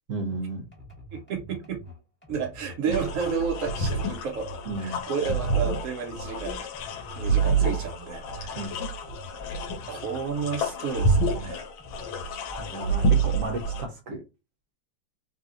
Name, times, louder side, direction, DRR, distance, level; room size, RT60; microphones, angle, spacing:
voice 1, 0.1-0.7 2.9-3.0 4.7-5.0 8.5-8.7 12.6-14.2, right 2 dB, 55° right, 1.0 m, -33 dB
sound 1, 0.7-10.7 11.0-12.8, equal, 5° left, 1.1 m, -46 dB
voice 2, 1.1-1.8 2.3-4.5 4.8-6.6 7.2-8.6 9.9-11.7 12.7-13.1, right 6 dB, 85° right, 0.7 m, -32 dB
sound 2, 2.9-13.9, right 3 dB, 85° left, 1.4 m, -28 dB
3.3 x 2.7 x 2.4 m
omnidirectional pair, 2.1 m